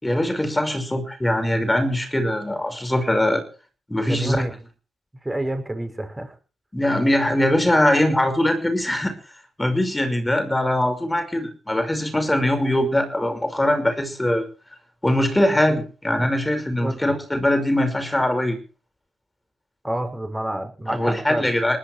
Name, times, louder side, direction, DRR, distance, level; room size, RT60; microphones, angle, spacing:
voice 1, 0.0-3.4 3.9-4.4 6.7-9.1 9.6-14.5 15.0-18.6 20.9-21.8, left 1 dB, 10° left, 8 dB, 5.5 m, -21 dB
voice 2, 4.1-4.5 5.2-6.4 16.8-17.2 19.8-21.5, right 1 dB, 15° right, 7 dB, 6.2 m, -28 dB
19.5 x 12.0 x 4.7 m, 0.36 s
supercardioid pair, 65°, 0 cm